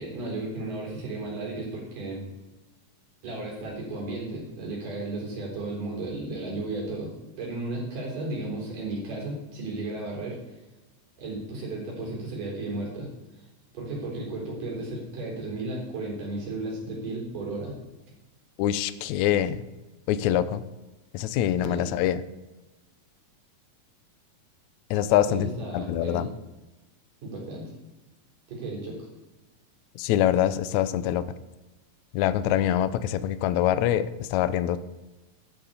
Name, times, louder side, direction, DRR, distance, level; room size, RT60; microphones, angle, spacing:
voice 1, 0.0-2.2 3.2-10.4 11.2-13.1 13.4-13.5 13.7-17.7 21.6-21.9 25.3-26.3 27.2-27.7 28.5-29.0, right 2 dB, 65° right, -3 dB, 5.7 m, -34 dB
voice 2, 18.6-19.6 20.1-20.6 21.1-22.2 24.9-26.3 30.0-31.2 32.1-34.8, left 11 dB, 90° left, 13 dB, 1.6 m, -24 dB
14.0 x 9.4 x 4.3 m, 1.1 s
omnidirectional pair, 4.1 m